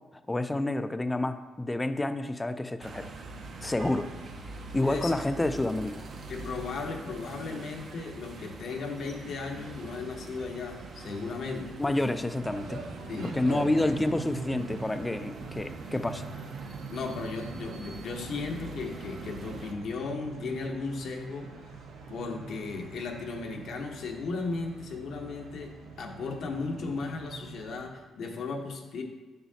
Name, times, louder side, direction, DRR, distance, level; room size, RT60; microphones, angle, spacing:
voice 1, 0.3-3.1 3.6-4.1 4.4-6.0 11.8-12.9 13.3-16.2, left 2 dB, 15° left, 10 dB, 0.4 m, -29 dB
sound 1, 2.8-19.7, right 3 dB, 60° right, 0.7 m, -44 dB
voice 2, 4.8-5.2 6.3-11.8 13.1-13.9 16.9-21.5 22.1-29.0, left 4 dB, 65° left, 2 dB, 0.9 m, -36 dB
sound 2, 12.4-27.9, right 4 dB, 85° right, 0.8 m, -44 dB
7.0 x 6.2 x 2.8 m, 1.2 s
cardioid pair, 90°, 0 cm